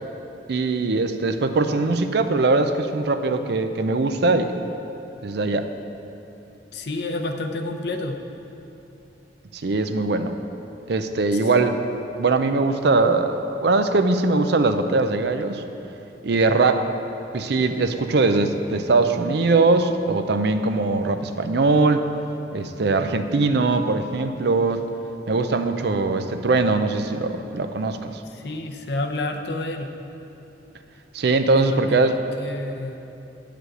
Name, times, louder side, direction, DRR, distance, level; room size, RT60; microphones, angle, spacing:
voice 1, 0.5-4.6 5.2-5.7 9.5-10.4 10.9-11.8 12.2-15.6 16.2-16.9 17.3-22.0 22.5-24.8 25.3-28.2 31.1-32.2, right 3 dB, 65° right, 8 dB, 0.5 m, -21 dB
voice 2, 6.7-8.2 11.3-11.8 28.3-29.9 31.6-33.0, left 2 dB, 65° left, 5 dB, 0.7 m, -30 dB
9.8 x 5.1 x 7.7 m, 2.9 s
head